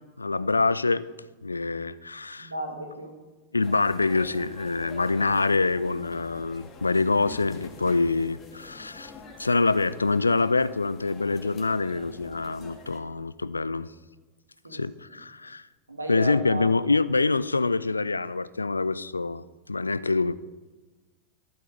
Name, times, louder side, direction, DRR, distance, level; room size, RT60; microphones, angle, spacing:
voice 1, 0.2-1.1 1.4-2.5 3.5-9.1 9.4-13.9 14.7-15.6 16.1-19.4 19.7-20.3, left 3 dB, 80° left, 18 dB, 0.4 m, -25 dB
voice 2, 2.4-3.2 14.6-14.8 15.1-15.2 15.9-16.7, right 2 dB, 80° right, 4 dB, 2.0 m, -34 dB
sound 1, 3.6-13.0, left 4 dB, 25° left, 2.0 m, -47 dB
12.0 x 11.5 x 5.0 m, 1.3 s
figure-of-eight pair, 90°, 0 cm